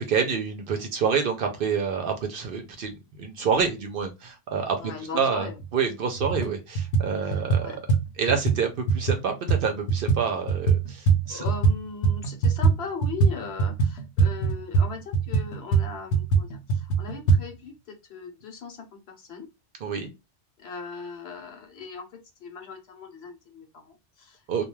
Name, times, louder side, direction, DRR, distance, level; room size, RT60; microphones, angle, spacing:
voice 1, 0.0-4.8 5.1-7.7 8.2-11.4 19.8-20.1 24.5-24.7, right 6 dB, 60° right, 5 dB, 0.7 m, -27 dB
voice 2, 4.8-5.6 7.2-7.8 11.3-19.5 20.6-22.1 22.4-24.7, left 5 dB, 65° left, 3 dB, 1.0 m, -39 dB
sound 1, 5.6-5.7 6.2-6.5 6.7-11.8 12.0-17.4, right 5 dB, 90° left, 0.9 m, -23 dB
2.3 x 2.2 x 3.0 m, 0.25 s
omnidirectional pair, 1.2 m